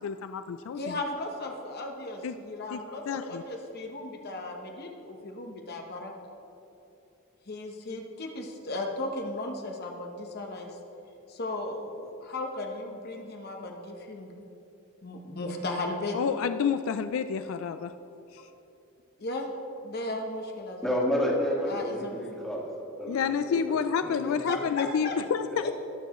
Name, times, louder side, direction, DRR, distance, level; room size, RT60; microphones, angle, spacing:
voice 1, 0.0-1.0 2.2-2.3 2.7-3.4 16.1-17.9 18.3-18.4 23.1-25.7, left 6 dB, 70° left, 10 dB, 0.3 m, -29 dB
voice 2, 0.7-6.1 7.5-10.8 11.3-14.3 15.0-16.2 19.2-19.5 19.8-21.0 21.7-22.3 24.5-25.2 25.6-25.7, left 2 dB, 50° left, 2 dB, 1.0 m, -36 dB
voice 3, 20.8-22.7 23.0-23.7 24.0-24.6, left 1 dB, ahead, -5 dB, 1.8 m, -30 dB
19.0 x 7.0 x 3.0 m, 2.9 s
head